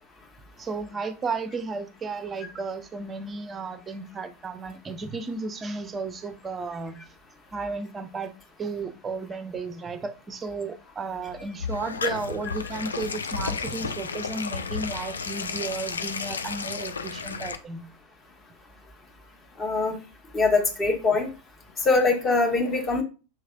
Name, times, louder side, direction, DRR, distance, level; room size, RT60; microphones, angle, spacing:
voice 1, 0.6-7.0 7.5-8.3 8.6-17.9, right 4 dB, 20° right, 0.5 m, -33 dB
sound 1, 11.3-17.6, left 5 dB, 70° left, 0.4 m, -32 dB
voice 2, 19.6-20.0 20.3-21.3 21.8-23.0, left 3 dB, 20° left, 1.1 m, -23 dB
5.7 x 3.2 x 2.4 m
figure-of-eight pair, 90°, 0 cm